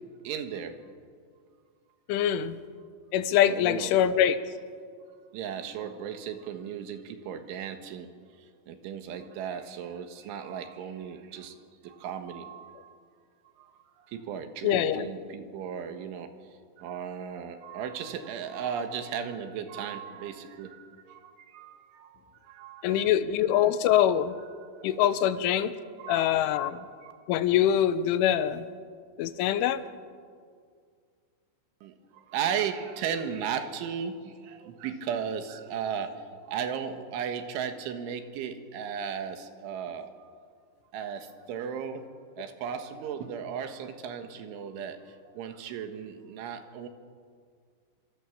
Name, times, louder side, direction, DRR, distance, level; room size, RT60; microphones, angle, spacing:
voice 1, 0.3-0.8 3.5-3.9 5.3-8.1 8.4-11.6 11.8-12.9 13.6-16.3 16.8-23.1 24.6-25.3 25.6-27.1 31.8-40.3 40.9-42.0 42.4-46.9, right 7 dB, 80° right, 7 dB, 4.0 m, -36 dB
voice 2, 2.1-2.6 3.1-4.4 14.6-15.1 22.8-24.4 24.8-25.7 26.1-26.8 27.3-28.7 29.2-29.8, left 10 dB, 85° left, 12 dB, 3.4 m, -24 dB
26.0 x 25.0 x 7.2 m, 2.1 s
omnidirectional pair, 5.5 m